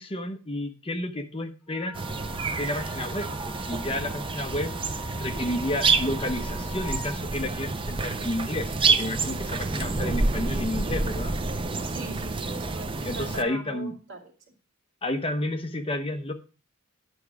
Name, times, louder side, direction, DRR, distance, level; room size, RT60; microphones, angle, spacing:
voice 1, 0.0-2.0 2.4-4.7 5.2-11.4 13.0-14.0 15.0-16.3, left 1 dB, 25° left, 6 dB, 0.8 m, -31 dB
Wind instrument woodwind instrument, 1.7-7.2, left 3 dB, 5° left, 1.9 m, -44 dB
sound 1, 1.9-13.4, right 3 dB, 25° right, 0.6 m, -28 dB
voice 2, 11.9-14.3, right 2 dB, 65° right, 0 dB, 2.3 m, -41 dB
9.6 x 6.0 x 4.7 m, 0.36 s
head